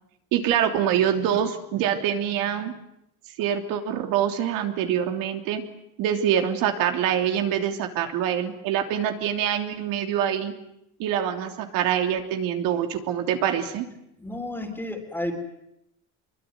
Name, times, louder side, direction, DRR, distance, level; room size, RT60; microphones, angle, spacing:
voice 1, 0.3-2.7 3.4-5.6 6.0-10.5 11.0-13.8, right 9 dB, 65° right, 5 dB, 3.2 m, -25 dB
voice 2, 14.2-15.3, left 1 dB, 5° left, 5 dB, 3.7 m, -31 dB
25.0 x 23.0 x 9.4 m, 0.81 s
cardioid pair, 160°, 37 cm